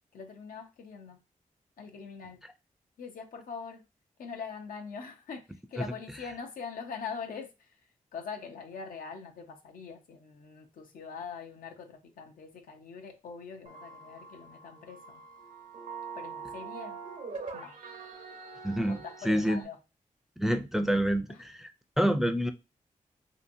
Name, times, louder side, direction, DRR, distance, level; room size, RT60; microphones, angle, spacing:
voice 1, 0.1-1.2 1.8-2.4 3.0-3.8 4.2-15.2 16.1-17.0 17.5-17.8 18.9-19.8 21.3-21.4, left 5 dB, 85° left, 0.6 m, -43 dB
sound 1, 13.7-19.7, right 5 dB, 70° right, 0.7 m, -44 dB
voice 2, 18.6-19.0 19.3-19.6 20.4-21.7 22.0-22.5, equal, ahead, 0.4 m, -27 dB
2.8 x 2.6 x 2.6 m
cardioid pair, 60°, 14 cm